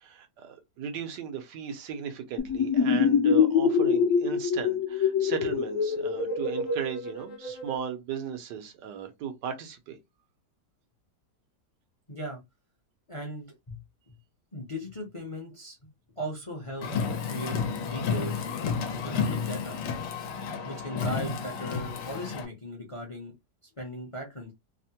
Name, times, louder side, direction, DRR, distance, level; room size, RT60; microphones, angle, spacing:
voice 1, 0.0-10.0, right 8 dB, 80° right, 1.4 m, -36 dB
sound 1, 2.4-7.8, left 6 dB, 60° left, 0.9 m, -25 dB
voice 2, 12.1-12.4 13.1-13.8 14.5-15.8 16.2-16.9 17.3-18.7 19.0-19.8 20.6-23.3 23.8-24.5, equal, 30° left, 0.6 m, -38 dB
Car, 16.8-22.5, left 6 dB, 80° left, 1.3 m, -31 dB
3.4 x 2.1 x 2.7 m
omnidirectional pair, 1.8 m